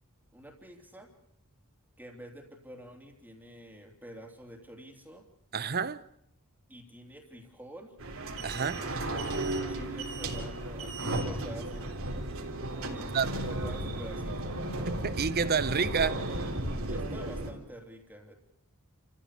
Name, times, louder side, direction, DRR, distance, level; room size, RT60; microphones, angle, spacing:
voice 1, 0.3-1.1 2.0-5.2 6.7-7.9 8.4-12.0 12.9-14.5 16.9-18.3, equal, 10° right, 3.1 m, -48 dB
voice 2, 5.5-6.0 8.4-8.8 13.1-13.3 14.8-16.3, right 5 dB, 45° right, 0.8 m, -29 dB
sound 1, 8.0-17.5, right 1 dB, 65° right, 3.7 m, -34 dB
29.0 x 15.0 x 8.4 m
head